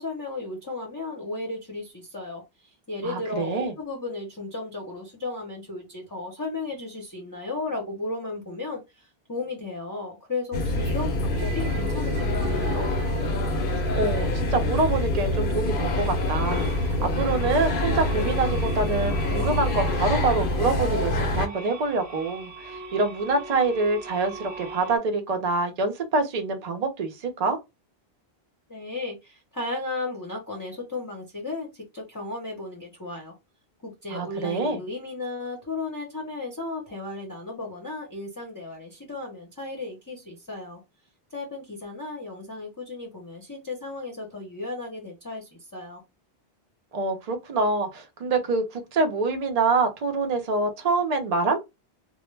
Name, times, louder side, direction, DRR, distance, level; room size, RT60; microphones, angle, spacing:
voice 1, 0.0-12.9 28.7-33.3 33.8-40.8 41.3-46.0, left 3 dB, 25° left, 0.6 m, -35 dB
voice 2, 3.0-3.7 13.9-27.6 34.1-34.8 46.9-51.6, right 3 dB, 50° right, 0.6 m, -26 dB
sound 1, 10.5-21.5, left 1 dB, 65° left, 0.7 m, -26 dB
sound 2, 11.3-25.0, right 4 dB, 85° right, 1.0 m, -40 dB
2.2 x 2.0 x 3.1 m
omnidirectional pair, 1.0 m